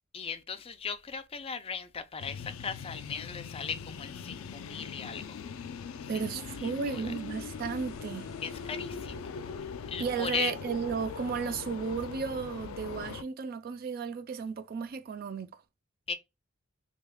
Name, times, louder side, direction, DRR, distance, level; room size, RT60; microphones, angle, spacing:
voice 1, 0.1-5.4 6.6-7.0 8.4-9.3 9.9-10.5 16.1-16.2, left 6 dB, 30° left, 0.4 m, -37 dB
sound 1, 2.2-13.2, left 6 dB, 85° left, 0.4 m, -41 dB
voice 2, 6.1-8.3 10.0-15.6, right 6 dB, 50° right, 0.3 m, -34 dB
sound 2, 7.1-11.5, left 1 dB, 50° left, 1.2 m, -56 dB
3.4 x 3.4 x 2.2 m
head